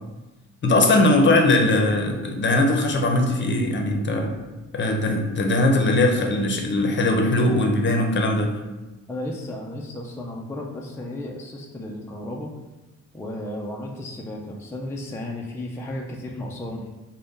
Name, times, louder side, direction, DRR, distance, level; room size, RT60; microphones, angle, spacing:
voice 1, 0.6-4.3 4.7-8.5, left 2 dB, 40° left, 2 dB, 0.7 m, -20 dB
voice 2, 9.1-12.6 13.1-16.9, left 1 dB, 10° left, -1 dB, 0.4 m, -34 dB
3.9 x 2.2 x 3.6 m, 1.1 s
cardioid pair, 90°, 30 cm